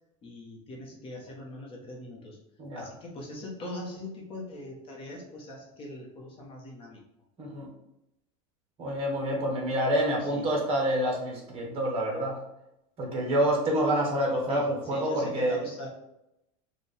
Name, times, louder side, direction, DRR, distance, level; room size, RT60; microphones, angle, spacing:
voice 1, 0.2-2.4 2.7-7.0 10.2-10.5 14.5-15.9, left 2 dB, 30° left, -1 dB, 1.1 m, -41 dB
voice 2, 7.4-7.7 8.8-12.4 13.0-15.6, right 1 dB, 35° right, -1 dB, 1.3 m, -27 dB
4.5 x 2.5 x 3.3 m, 0.85 s
supercardioid pair, 140°, 18 cm